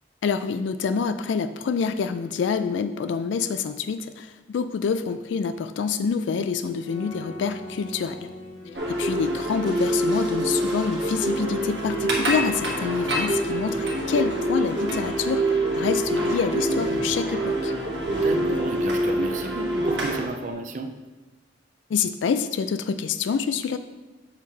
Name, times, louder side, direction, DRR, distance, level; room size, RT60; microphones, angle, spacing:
voice 1, 0.2-8.3 8.9-15.4 15.8-17.7 21.9-23.8, left 6 dB, 75° left, 10 dB, 0.3 m, -27 dB
sound 1, 6.8-20.5, left 1 dB, 25° left, 1.3 m, -45 dB
sound 2, 8.7-20.3, right 1 dB, 65° right, 1.4 m, -25 dB
voice 2, 18.1-21.0, right 3 dB, 40° right, 7 dB, 0.4 m, -32 dB
7.3 x 3.2 x 5.6 m, 1.2 s
head